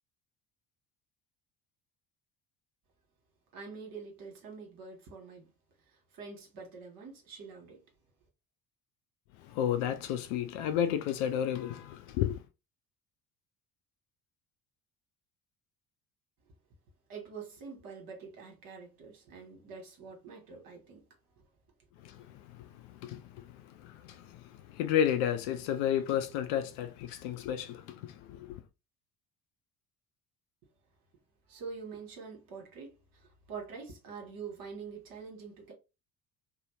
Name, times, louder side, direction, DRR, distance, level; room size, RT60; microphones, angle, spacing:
voice 1, 3.5-5.5 5.9-7.8 17.1-21.1 21.4-21.5 31.5-35.7, right 5 dB, 45° right, 1.2 m, -46 dB
voice 2, 9.4-12.4 22.0-28.6, left 10 dB, 55° left, 0.5 m, -32 dB
2.7 x 2.0 x 2.9 m
figure-of-eight pair, 55°, 46 cm